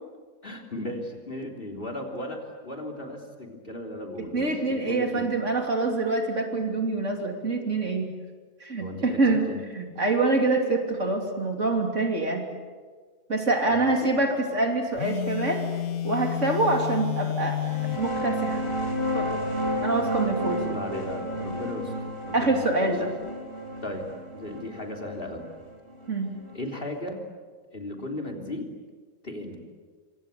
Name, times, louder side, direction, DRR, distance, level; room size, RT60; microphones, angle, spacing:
voice 1, 0.4-5.4 8.8-9.2 9.5-9.6 13.7-14.2 20.6-21.9 22.2-23.0 23.8-25.5 26.5-27.2 27.7-28.7 29.2-29.6, left 1 dB, 35° left, 4 dB, 3.5 m, -36 dB
voice 2, 4.2-8.1 8.6-9.5 9.7-12.5 13.3-15.6 16.0-17.6 18.0-18.6 19.1-19.4 19.8-20.7 22.3-23.1 26.1-26.4, right 2 dB, 50° right, 3 dB, 3.6 m, -25 dB
Telephone, 15.0-18.1, left 11 dB, 65° left, 1.4 m, -30 dB
sound 1, 17.6-26.9, equal, 20° left, 3.7 m, -32 dB
26.5 x 25.5 x 8.5 m, 1.5 s
omnidirectional pair, 1.6 m